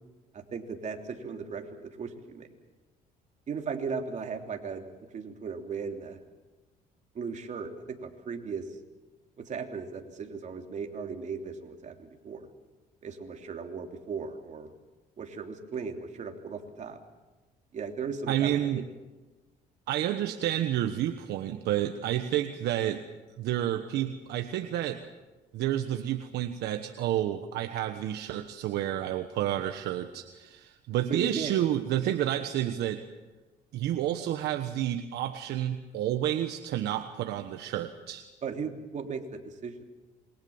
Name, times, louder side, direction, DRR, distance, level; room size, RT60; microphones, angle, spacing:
voice 1, 0.3-2.5 3.5-4.9 5.1-6.2 7.1-8.8 9.4-12.5 13.0-14.7 15.2-17.0 17.7-18.8 31.1-31.5 38.4-39.8, right 5 dB, 45° right, 3 dB, 3.2 m, -37 dB
voice 2, 18.3-18.8 19.9-23.0 23.4-25.0 25.5-33.0 33.7-38.3, right 12 dB, 80° right, 7 dB, 1.3 m, -30 dB
27.0 x 22.5 x 7.3 m, 1.2 s
cardioid pair, 110°, 17 cm